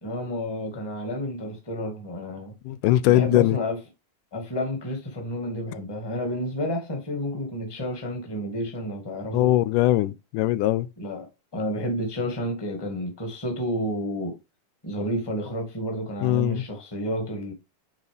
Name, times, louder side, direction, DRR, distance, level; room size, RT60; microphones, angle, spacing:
voice 1, 0.0-2.5 3.1-3.8 4.3-9.5 11.0-11.3 11.5-14.4 14.8-17.5, equal, 10° left, 1.2 m, -30 dB
voice 2, 2.7-3.6 9.3-10.9 16.2-16.7, left 15 dB, 85° left, 2.1 m, -21 dB
9.0 x 4.0 x 3.5 m
omnidirectional pair, 3.6 m